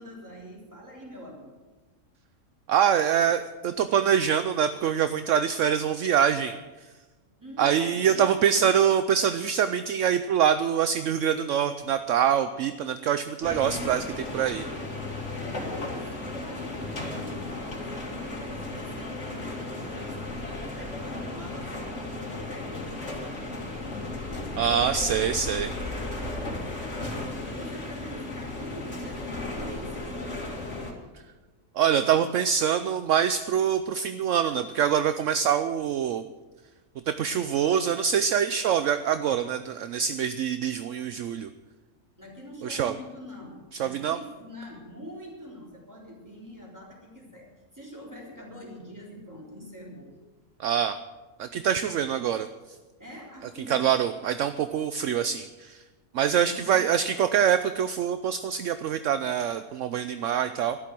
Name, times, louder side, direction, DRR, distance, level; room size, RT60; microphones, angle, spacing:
voice 1, 0.0-1.5 7.4-8.8 9.4-9.5 15.4-24.8 25.8-26.6 26.9-30.7 39.3-39.4 42.2-50.2 51.8-52.0 53.0-53.9 56.4-56.9, equal, 15° right, -2 dB, 3.6 m, -45 dB
voice 2, 2.7-6.9 7.6-14.6 24.6-25.7 31.7-36.2 37.1-41.5 42.6-42.9 43.8-44.2 50.6-51.0 51.4-52.5 53.7-55.8 56.1-60.8, right 8 dB, 70° right, 11 dB, 0.9 m, -25 dB
sound 1, 13.4-30.9, left 2 dB, 55° left, 2.8 m, -35 dB
13.0 x 11.5 x 7.6 m, 1.2 s
omnidirectional pair, 1.4 m